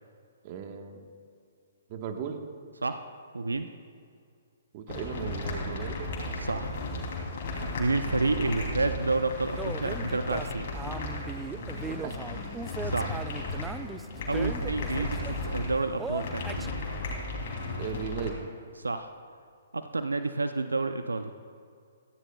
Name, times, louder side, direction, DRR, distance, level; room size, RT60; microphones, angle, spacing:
voice 1, 0.4-1.0 1.9-2.4 4.7-6.1 11.5-12.2 17.8-18.4, right 7 dB, 40° right, 5 dB, 1.2 m, -37 dB
voice 2, 3.3-3.7 6.4-6.7 7.8-10.7 12.8-13.2 14.3-16.7 18.8-19.1 19.7-21.3, right 3 dB, 90° right, 9 dB, 0.5 m, -30 dB
sound 1, 4.9-18.3, left 2 dB, 55° left, 2.9 m, -35 dB
sound 2, 6.7-16.3, left 3 dB, 35° left, 1.7 m, -47 dB
sound 3, 9.6-15.5 16.0-16.7, right 4 dB, 10° right, 0.3 m, -39 dB
17.5 x 14.0 x 2.3 m, 2.3 s
figure-of-eight pair, 125°, 0 cm